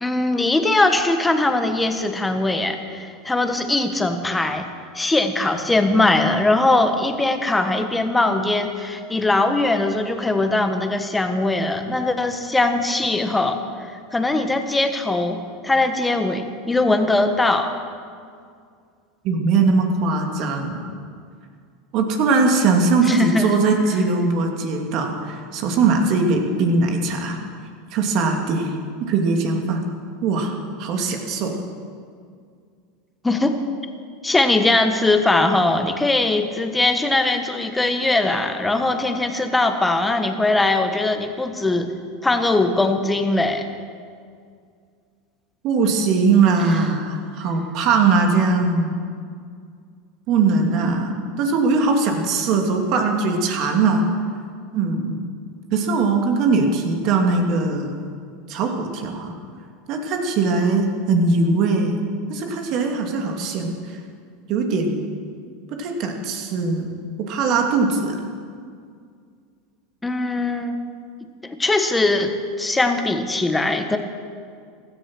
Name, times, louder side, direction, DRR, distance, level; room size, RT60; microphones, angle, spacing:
voice 1, 0.0-4.6 4.9-13.6 14.1-17.7 23.1-23.5 33.2-33.6 34.2-41.9 42.2-43.6 70.0-70.8 71.6-74.0, left 2 dB, 10° left, 7 dB, 1.5 m, -20 dB
voice 2, 19.2-20.9 21.9-27.4 27.9-28.7 29.0-29.8 30.2-30.5 30.8-31.6 45.6-48.9 50.3-54.1 54.7-55.2 55.7-58.0 58.5-59.3 59.9-62.0 62.3-63.8 64.5-65.0 65.7-66.9 67.3-68.2, right 4 dB, 55° right, 3 dB, 2.5 m, -20 dB
16.0 x 13.5 x 6.3 m, 2.2 s
supercardioid pair, 110°, 0 cm